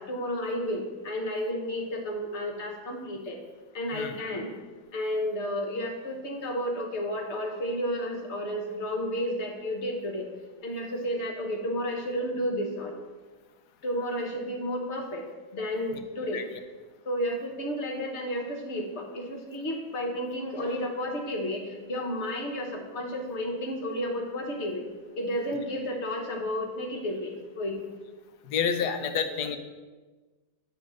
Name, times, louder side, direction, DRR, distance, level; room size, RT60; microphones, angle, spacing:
voice 1, 0.0-3.4 3.7-4.5 4.9-10.3 10.6-12.9 13.8-15.2 15.5-16.4 17.0-24.9 25.2-27.8 28.8-29.2, equal, 45° left, 1 dB, 1.3 m, -32 dB
voice 2, 28.5-29.6, left 7 dB, 75° left, 8 dB, 1.1 m, -28 dB
8.9 x 3.2 x 6.3 m, 1.3 s
omnidirectional pair, 1.9 m